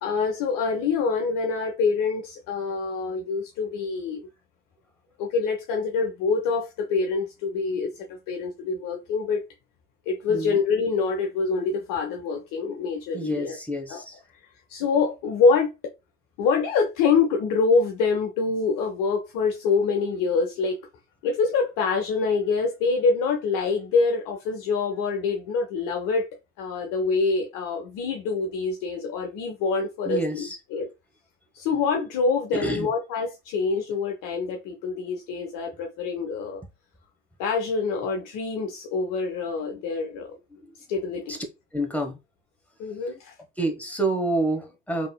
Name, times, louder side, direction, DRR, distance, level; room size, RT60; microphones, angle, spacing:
voice 1, 0.0-4.2 5.2-9.4 10.1-13.6 13.9-14.0 14.7-15.7 16.4-20.8 21.2-26.3 26.6-30.9 31.5-36.6 37.4-40.3 40.9-41.4 42.8-43.3, left 4 dB, 60° left, 0.7 m, -25 dB
voice 2, 10.3-10.6 13.1-14.2 30.0-30.6 32.5-32.9 40.6-40.7 41.3-41.4 41.7-42.2 43.6-45.1, right 2 dB, 5° left, 1.1 m, -28 dB
3.6 x 2.7 x 2.3 m
hypercardioid pair, 60°, 37 cm